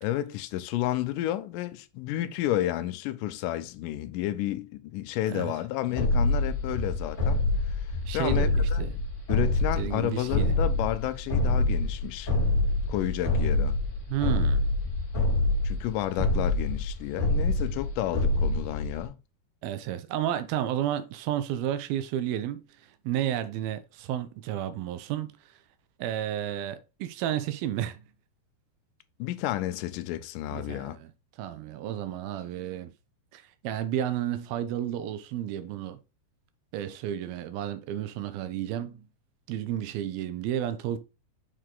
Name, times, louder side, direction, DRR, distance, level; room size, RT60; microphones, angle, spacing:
voice 1, 0.0-7.4 7.7-8.9 9.3-12.3 12.9-13.8 15.6-19.2 29.2-31.0, left 13 dB, 85° left, 1.9 m, -31 dB
sound 1, 6.0-19.1, left 2 dB, 25° left, 2.2 m, -26 dB
voice 2, 8.0-8.9 9.8-10.5 14.1-14.6 19.6-22.6 23.0-25.3 26.0-28.0 30.5-31.1 31.4-32.9 33.3-36.0 36.7-39.1 39.5-41.0, right 11 dB, 80° right, 2.4 m, -32 dB
6.5 x 4.7 x 3.7 m
omnidirectional pair, 4.5 m